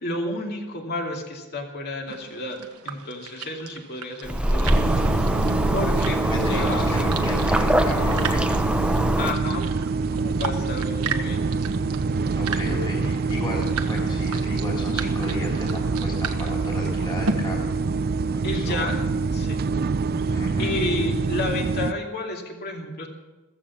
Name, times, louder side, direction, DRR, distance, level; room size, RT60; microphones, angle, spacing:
voice 1, 0.0-4.9 5.2-5.3 5.7-6.9 9.2-9.6 10.1-11.5 18.4-19.0 19.3-19.7 20.3-23.1, left 2 dB, 45° left, 1 dB, 2.6 m, -31 dB
sound 1, 2.1-17.3, right 5 dB, 75° right, 1.3 m, -36 dB
sound 2, 4.2-9.3, equal, 5° right, 0.7 m, -23 dB
sound 3, 4.7-21.9, right 4 dB, 45° right, 0.5 m, -26 dB
voice 2, 6.3-8.5 12.3-17.7 18.3-19.1 20.3-20.8, left 1 dB, 20° left, -3 dB, 3.4 m, -34 dB
15.0 x 15.0 x 5.9 m, 1.1 s
head